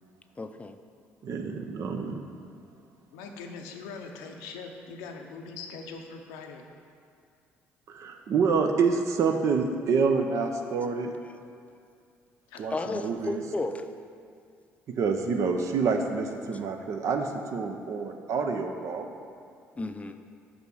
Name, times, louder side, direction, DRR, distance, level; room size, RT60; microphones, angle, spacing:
voice 1, 0.4-0.8 12.7-13.8 16.4-16.5 19.8-20.2, left 2 dB, 25° left, 8 dB, 0.5 m, -33 dB
voice 2, 1.2-2.2 7.9-11.1 12.6-13.4 14.9-19.1, right 5 dB, 60° right, 5 dB, 0.7 m, -27 dB
voice 3, 3.1-6.6 12.5-13.2 13.4-13.5, left 5 dB, 85° left, 3 dB, 0.6 m, -42 dB
5.5 x 5.2 x 6.3 m, 2.4 s
supercardioid pair, 60°, 6 cm